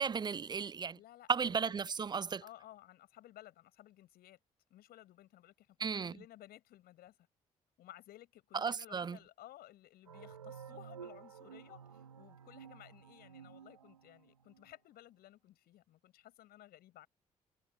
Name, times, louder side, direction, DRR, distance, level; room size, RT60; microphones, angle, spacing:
voice 1, 0.0-1.0 1.3-2.4 5.8-6.1 8.5-9.2, right 6 dB, 25° right, 0.4 m, -34 dB
voice 2, 0.9-1.9 2.4-4.4 4.7-7.1 7.8-17.1, left 14 dB, 65° left, 7.4 m, -57 dB
sound 1, 10.1-14.6, right 7 dB, 90° right, 4.2 m, -52 dB
figure-of-eight pair, 45°, 17 cm